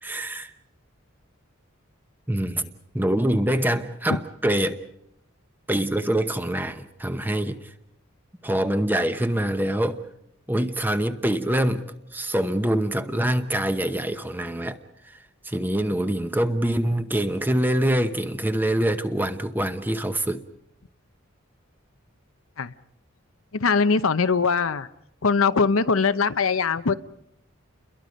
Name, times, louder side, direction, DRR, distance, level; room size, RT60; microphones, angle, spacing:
voice 1, 0.0-0.5 2.3-4.8 5.7-7.6 8.4-10.0 10.5-11.8 12.1-14.8 15.4-20.4, right 1 dB, 10° right, 9 dB, 0.9 m, -25 dB
voice 2, 23.5-24.9 25.2-26.9, left 5 dB, 80° left, 12 dB, 0.8 m, -21 dB
29.5 x 22.0 x 5.2 m, 0.78 s
head